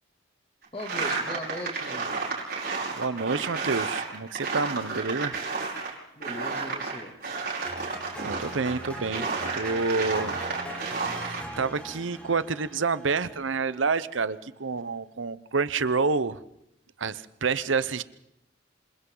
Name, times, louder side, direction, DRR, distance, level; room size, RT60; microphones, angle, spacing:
voice 1, 0.7-2.3 6.2-7.2, left 1 dB, 30° left, 3 dB, 2.6 m, -39 dB
sound 1, 0.8-6.0 6.2-11.4, right 4 dB, 55° right, 5.5 m, -32 dB
voice 2, 3.0-5.4 8.2-9.3 9.5-10.4 11.0-16.4 17.0-18.0, right 4 dB, 85° right, 15 dB, 0.9 m, -28 dB
sound 2, 7.7-13.8, equal, 5° left, 3.9 m, -41 dB
27.5 x 26.5 x 3.9 m, 0.81 s
head